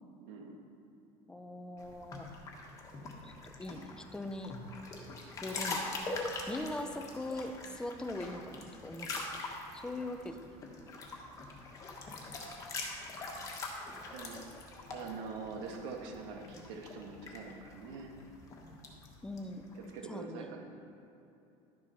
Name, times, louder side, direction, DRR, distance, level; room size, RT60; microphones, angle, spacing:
voice 1, 0.2-0.6 14.1-14.4 14.9-18.1 19.7-20.6, right 4 dB, 75° right, 2 dB, 1.7 m, -44 dB
voice 2, 1.3-2.3 3.2-4.5 5.4-9.2 9.7-10.6 19.2-19.6 20.1-20.5, left 1 dB, 5° left, 6 dB, 0.5 m, -41 dB
sound 1, 1.8-20.0, left 3 dB, 25° left, 1.5 m, -43 dB
12.0 x 7.2 x 5.6 m, 2.8 s
cardioid pair, 165°, 12 cm